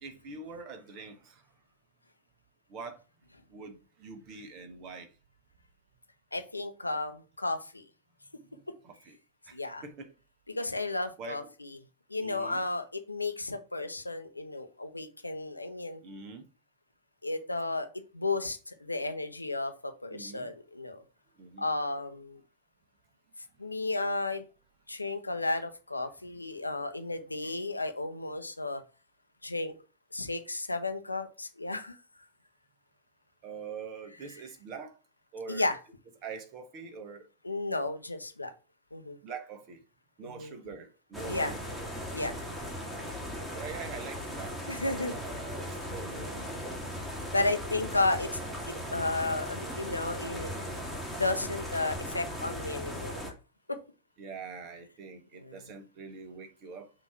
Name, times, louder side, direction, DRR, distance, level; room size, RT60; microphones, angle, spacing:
voice 1, 0.0-1.4 2.7-3.0 3.5-5.1 8.8-9.2 9.5-9.6 9.8-10.1 11.2-11.4 12.2-12.6 16.0-16.4 20.1-20.5 21.4-21.7 33.4-35.0 35.3-35.7 36.2-37.3 39.2-39.8 40.2-41.6 43.3-44.6 44.8-46.5 47.3-47.6 54.2-56.9, right 5 dB, 40° right, 1.3 m, -44 dB
voice 2, 6.3-7.8 9.5-9.8 10.5-11.8 12.1-16.0 17.2-21.0 21.6-22.4 23.6-24.4 24.9-28.8 29.4-29.7 30.1-32.0 35.5-35.8 37.4-38.5 38.9-39.2 40.2-40.6 41.2-41.5 42.1-42.3 44.7-45.2 47.3-48.4 48.7-50.5 51.1-53.2 53.7-53.8 55.3-55.6, left 2 dB, 85° left, 0.8 m, -33 dB
sound 1, 41.1-53.3, equal, 5° right, 1.8 m, -38 dB
6.0 x 3.0 x 5.7 m
figure-of-eight pair, 90°, 0 cm